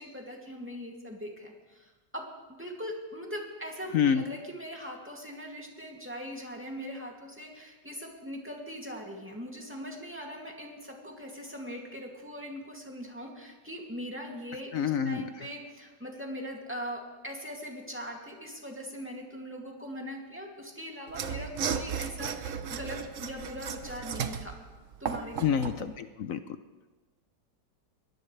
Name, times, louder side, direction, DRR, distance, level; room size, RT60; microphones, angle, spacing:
voice 1, 0.0-2.2 2.6-24.6 25.0-25.4 25.8-25.9, equal, 5° right, -1 dB, 2.5 m, -41 dB
voice 2, 14.7-15.5 25.4-26.4, left 8 dB, 65° left, 10 dB, 0.9 m, -27 dB
Mechanisms / Sawing, 21.1-25.8, right 7 dB, 55° right, 1.0 m, -35 dB
23.0 x 18.5 x 3.3 m, 1.3 s
omnidirectional pair, 1.9 m